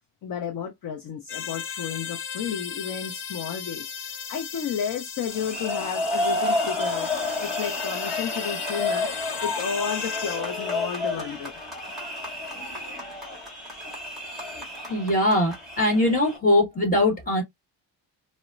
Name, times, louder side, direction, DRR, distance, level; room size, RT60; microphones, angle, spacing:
voice 1, 0.2-7.1 7.4-11.5, left 7 dB, 45° left, 0.6 m, -32 dB
sound 1, 1.3-10.4, left 7 dB, 85° left, 0.9 m, -36 dB
sound 2, 5.3-16.4, left 2 dB, ahead, 1.4 m, -30 dB
voice 2, 14.9-17.4, left 1 dB, 15° left, 1.4 m, -21 dB
4.0 x 2.1 x 2.3 m
cardioid pair, 165°, 49 cm